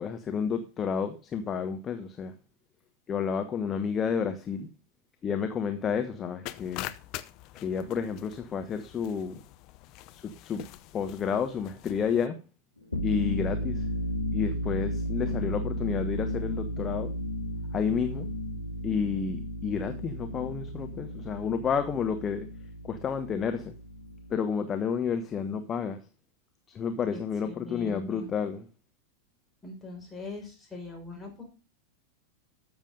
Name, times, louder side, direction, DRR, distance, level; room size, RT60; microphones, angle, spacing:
voice 1, 0.0-2.3 3.1-4.7 5.2-6.9 7.5-9.4 10.1-10.6 10.9-12.4 13.0-13.9 14.3-17.2 17.7-18.3 18.8-22.5 22.8-23.7 24.3-26.0 26.7-28.7, left 6 dB, 25° left, 1.2 m, -30 dB
sound 1, 6.5-12.3, left 16 dB, 40° left, 0.8 m, -44 dB
sound 2, 12.8-24.3, equal, 85° left, 2.3 m, -34 dB
voice 2, 27.1-28.3 29.6-31.4, left 3 dB, 10° left, 6.1 m, -42 dB
13.0 x 7.3 x 5.3 m
figure-of-eight pair, 90°, 0 cm